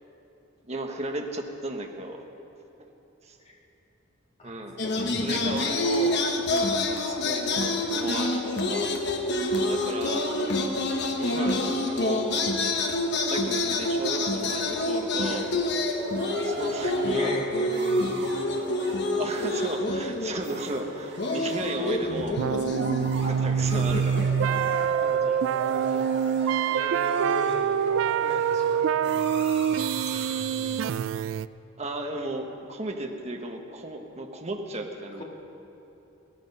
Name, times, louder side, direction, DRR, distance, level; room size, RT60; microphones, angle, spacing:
voice 1, 0.7-2.2 3.2-3.4 4.4-4.8 5.2-6.2 6.5-8.9 9.6-10.3 11.2-12.8 13.3-15.5 16.4-17.4 19.2-22.4 23.1-24.8 31.8-35.2, right 2 dB, 35° right, 3 dB, 1.2 m, -35 dB
sound 1, 4.8-20.8 21.2-24.6, left 2 dB, 60° left, 1.2 m, -27 dB
voice 2, 5.0-5.4 16.8-18.1 24.6-26.0 26.3-31.0 35.1-35.2, equal, 30° left, -1 dB, 1.9 m, -39 dB
sound 2, 15.2-30.4, right 2 dB, 60° right, 2.0 m, -39 dB
sound 3, 22.4-31.5, right 8 dB, 80° right, 0.3 m, -25 dB
16.5 x 13.5 x 5.5 m, 3.0 s
head